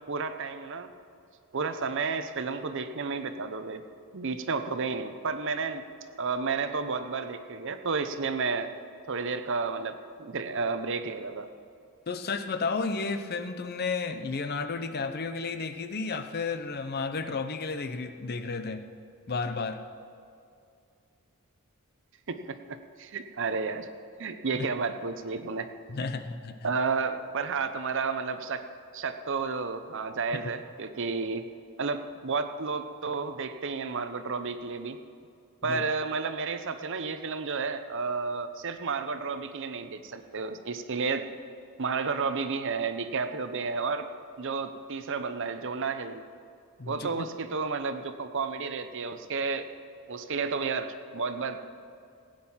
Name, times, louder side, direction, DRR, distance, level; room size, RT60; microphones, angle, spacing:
voice 1, 0.1-0.9 1.5-3.8 4.1-5.8 6.2-8.7 9.1-11.5 22.3-23.9 24.2-25.7 26.6-28.6 28.9-31.5 31.8-35.0 35.6-41.3 41.8-44.1 44.4-46.2 46.9-49.7 50.1-51.6, right 4 dB, 55° right, 9 dB, 0.7 m, -31 dB
voice 2, 12.1-18.8 19.3-19.8 24.5-24.7 25.9-26.7 35.6-35.8 46.8-47.3, left 4 dB, 45° left, 9 dB, 0.7 m, -32 dB
17.0 x 9.0 x 5.7 m, 2.4 s
head